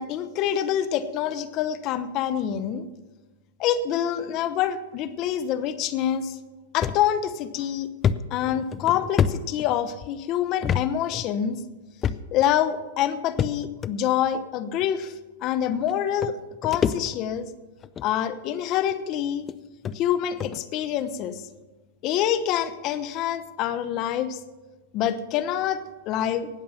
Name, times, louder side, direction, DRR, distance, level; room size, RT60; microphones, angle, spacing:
voice 1, 0.0-2.9 3.6-6.4 6.7-7.9 8.3-11.6 12.3-15.1 15.4-17.5 18.0-19.5 19.9-21.5 22.0-24.4 24.9-26.5, left 10 dB, 40° left, 13 dB, 1.0 m, -26 dB
sound 1, 6.8-7.0 7.4-7.5 8.0-10.1 10.6-10.8 11.1-11.3 12.0-12.5 13.4-13.9 14.8-14.9 15.9-16.0 16.2-17.4 17.8-18.1 18.9-19.0 19.5-19.6 19.8-20.0 20.4-20.6, left 8 dB, 25° left, 0.5 m, -26 dB
18.5 x 7.3 x 5.8 m, 1.3 s
hypercardioid pair, 125°, 0 cm